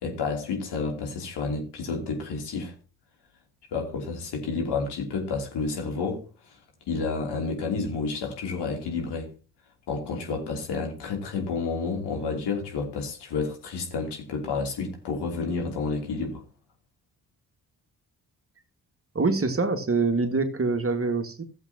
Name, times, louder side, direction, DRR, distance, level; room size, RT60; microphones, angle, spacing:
voice 1, 0.0-2.7 3.7-6.2 6.9-9.3 9.9-16.4, left 4 dB, 65° left, 3.1 m, -30 dB
voice 2, 19.2-21.4, right 3 dB, 30° right, 1.9 m, -25 dB
16.0 x 7.6 x 2.9 m
hypercardioid pair, 40°, 43 cm